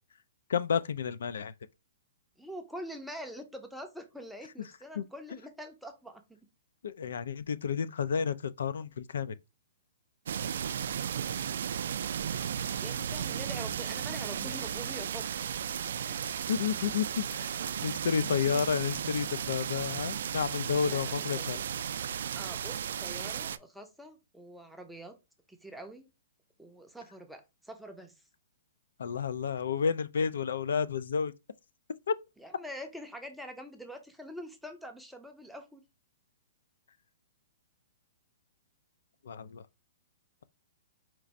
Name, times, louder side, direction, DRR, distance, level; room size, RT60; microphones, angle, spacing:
voice 1, 0.5-1.5 5.0-5.1 6.8-9.4 16.2-21.6 29.0-31.3 32.1-32.2 39.2-39.6, left 6 dB, 75° left, 0.4 m, -31 dB
voice 2, 2.4-6.4 12.8-15.4 20.9-21.6 22.3-25.1 25.5-26.1 26.6-28.1 32.4-35.8, equal, ahead, 0.5 m, -45 dB
sound 1, 10.3-23.6, right 8 dB, 60° right, 0.3 m, -35 dB
4.5 x 2.5 x 4.0 m
hypercardioid pair, 175°, 0 cm